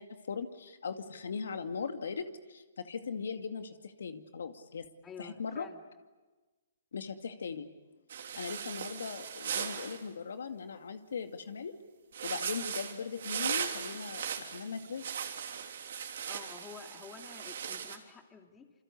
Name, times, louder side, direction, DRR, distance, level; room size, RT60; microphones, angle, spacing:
voice 1, 0.0-4.9 5.2-5.7 6.9-7.7 8.4-11.7 12.2-15.0, left 5 dB, 75° left, 7 dB, 2.2 m, -39 dB
voice 2, 5.0-5.8 16.3-18.7, left 5 dB, 15° left, 5 dB, 2.6 m, -49 dB
sound 1, 8.1-10.0 12.1-18.0, right 8 dB, 70° right, 3.5 m, -38 dB
27.5 x 25.5 x 8.4 m, 1.2 s
hypercardioid pair, 145°, 0 cm